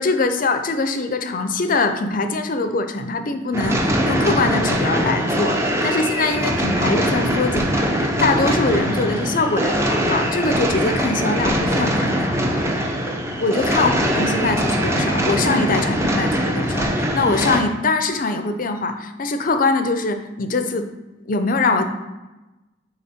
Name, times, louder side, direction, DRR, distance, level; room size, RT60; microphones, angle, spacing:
voice 1, 0.0-12.4 13.4-20.9 21.3-21.9, left 3 dB, 45° left, 8 dB, 0.6 m, -22 dB
sound 1, 3.5-17.6, equal, 15° right, 0.8 m, -22 dB
Bowed string instrument, 6.6-10.4, right 3 dB, 55° right, 1.8 m, -38 dB
9.7 x 3.5 x 4.3 m, 1.1 s
head